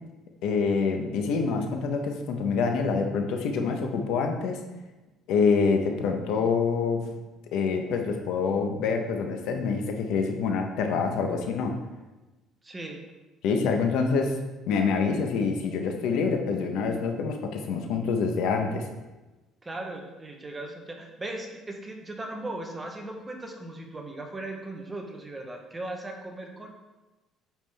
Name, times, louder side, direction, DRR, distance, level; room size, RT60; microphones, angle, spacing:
voice 1, 0.4-4.6 5.3-7.1 7.5-11.8 13.4-14.4 14.7-18.8, left 5 dB, 70° left, 4 dB, 1.0 m, -26 dB
voice 2, 12.6-13.1 19.6-26.7, right 2 dB, 15° right, 2 dB, 1.0 m, -38 dB
9.0 x 4.9 x 3.5 m, 1.1 s
cardioid pair, 140°, 0 cm